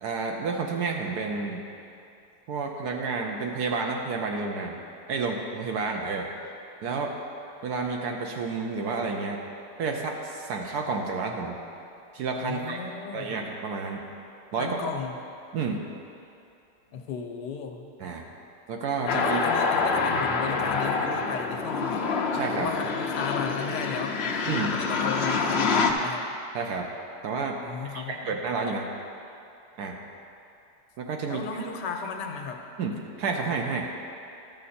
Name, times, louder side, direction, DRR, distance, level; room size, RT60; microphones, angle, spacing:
voice 1, 0.0-1.6 2.5-4.8 5.1-6.3 6.8-7.2 7.6-9.4 9.8-11.6 12.1-12.8 13.1-14.0 14.5-14.9 15.5-15.8 18.0-18.3 18.7-19.4 22.3-22.7 24.5-24.7 26.5-26.9 27.2-27.6 27.8-28.9 29.8-30.0 31.0-31.4 32.8-33.9, right 4 dB, 70° right, 1 dB, 1.2 m, -30 dB
voice 2, 12.4-13.4 14.6-15.2 16.9-17.9 19.0-22.1 22.6-24.2 24.7-26.3 27.6-28.4 31.3-32.6, left 6 dB, 80° left, 3 dB, 1.4 m, -35 dB
sound 1, 19.1-25.9, left 4 dB, 60° left, 0.7 m, -26 dB
12.5 x 6.6 x 4.2 m, 2.6 s
omnidirectional pair, 1.8 m